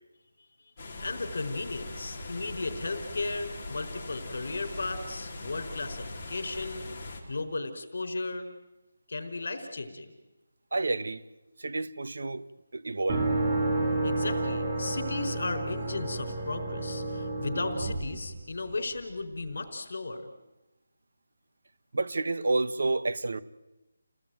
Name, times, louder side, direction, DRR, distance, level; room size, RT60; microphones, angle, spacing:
voice 1, 0.6-6.8 7.3-8.5 9.1-10.1 14.0-20.3, left 3 dB, 55° left, 7 dB, 4.7 m, -35 dB
sound 1, 0.8-7.2, left 2 dB, 15° left, 4.3 m, -41 dB
voice 2, 10.7-11.2 11.6-12.4 12.7-13.3 21.9-23.4, right 2 dB, 65° right, 13 dB, 1.3 m, -29 dB
Atmospheric piano chord, 13.1-19.0, right 2 dB, 20° right, 2.1 m, -30 dB
30.0 x 19.0 x 9.3 m, 1.0 s
figure-of-eight pair, 175°, 0 cm